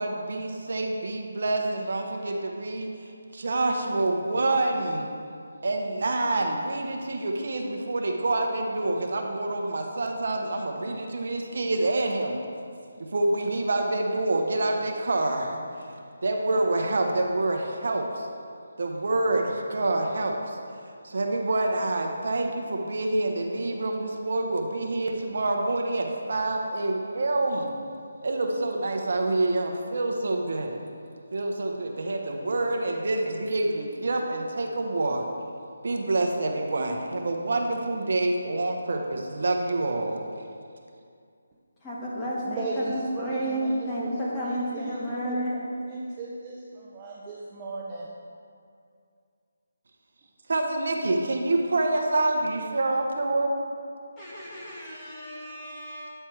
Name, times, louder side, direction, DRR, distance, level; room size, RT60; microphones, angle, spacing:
voice 1, 0.0-2.9 3.3-5.1 5.6-12.4 13.0-15.6 16.2-18.3 18.8-20.6 21.0-27.7 28.2-30.8 31.3-35.2 35.8-40.2 50.5-53.6, right 2 dB, 65° right, 2 dB, 0.8 m, -27 dB
voice 2, 41.8-45.6 54.2-56.1, equal, 15° left, -7 dB, 1.3 m, -31 dB
voice 3, 42.4-48.1, right 2 dB, 20° right, -6 dB, 0.6 m, -37 dB
8.7 x 3.4 x 4.5 m, 2.3 s
figure-of-eight pair, 160°, 0 cm